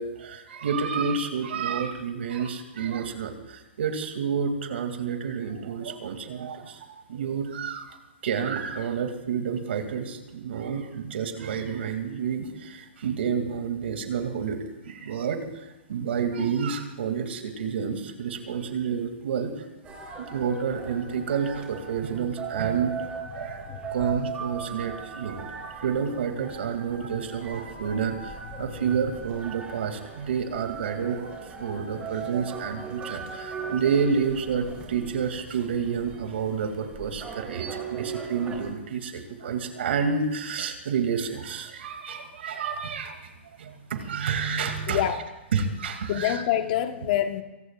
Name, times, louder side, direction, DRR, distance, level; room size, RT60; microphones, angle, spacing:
voice 1, 0.0-8.0 8.2-19.6 20.2-43.3 43.6-45.0 45.5-46.3, right 6 dB, 70° right, 6 dB, 2.5 m, -29 dB
sound 1, 19.8-38.7, right 6 dB, 20° right, 3.2 m, -39 dB
voice 2, 23.4-23.9 28.5-28.8 44.9-45.3 46.1-47.4, left 11 dB, 45° left, 8 dB, 1.2 m, -27 dB
25.0 x 18.5 x 2.5 m, 1.0 s
hypercardioid pair, 140°, 6 cm